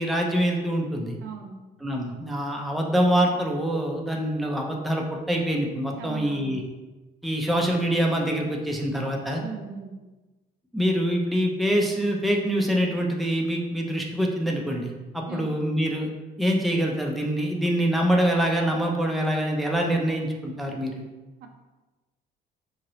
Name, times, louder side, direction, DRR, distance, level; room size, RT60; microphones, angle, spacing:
voice 1, 0.0-1.2 1.8-6.6 7.2-9.4 10.7-16.1 16.4-21.1, equal, ahead, 0 dB, 0.4 m, -25 dB
voice 2, 1.2-1.6 5.9-6.5 9.3-10.0 15.3-15.5 21.4-21.5, right 6 dB, 70° right, 4 dB, 0.4 m, -38 dB
2.8 x 2.7 x 3.0 m, 1.2 s
cardioid pair, 110°, 17 cm